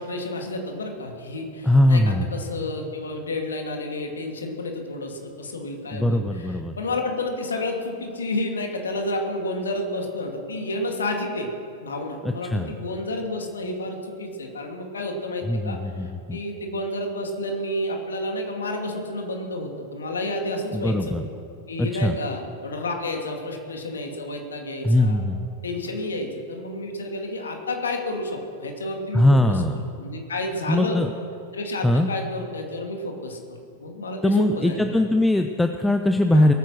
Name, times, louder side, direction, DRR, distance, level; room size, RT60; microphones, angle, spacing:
voice 1, 0.0-11.5 11.8-21.2 21.7-25.2 25.6-29.6 30.0-31.0 31.5-35.0 36.3-36.5, left 2 dB, 75° left, 3 dB, 2.2 m, -30 dB
voice 2, 1.6-2.3 5.9-6.7 12.2-12.7 15.5-16.4 20.7-21.2 21.8-22.2 24.8-25.5 29.1-29.8 30.7-31.1 31.8-32.1 34.2-36.5, left 1 dB, 5° left, 6 dB, 0.7 m, -21 dB
20.5 x 9.3 x 6.3 m, 2.5 s
figure-of-eight pair, 95°, 0 cm